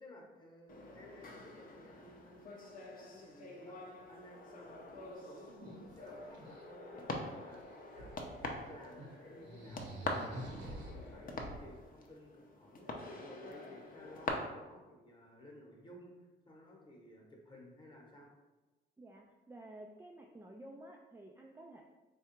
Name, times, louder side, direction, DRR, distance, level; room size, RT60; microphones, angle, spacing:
voice 1, 0.0-18.3, left 1 dB, 20° left, -1 dB, 1.0 m, -56 dB
sound 1, 0.7-14.3, left 2 dB, 45° left, 0.6 m, -46 dB
sound 2, 4.6-4.8 5.1-6.6 7.6-8.6 9.0-9.1 9.4-11.8, right 1 dB, 80° right, 1.0 m, -48 dB
voice 2, 19.0-21.8, right 1 dB, 10° right, 0 dB, 0.3 m, -52 dB
3.4 x 2.4 x 4.3 m, 1.2 s
cardioid pair, 90°, 20 cm